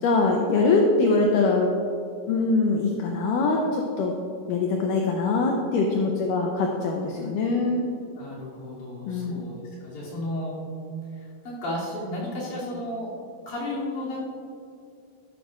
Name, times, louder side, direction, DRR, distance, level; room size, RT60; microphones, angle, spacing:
voice 1, 0.0-1.7 2.3-4.2 4.5-7.9 9.1-9.4, left 3 dB, 75° left, 0 dB, 2.1 m, -23 dB
voice 2, 8.0-10.6 11.1-13.1 13.5-14.2, left 1 dB, 55° left, -7 dB, 4.1 m, -33 dB
13.0 x 11.5 x 2.5 m, 2.5 s
omnidirectional pair, 4.3 m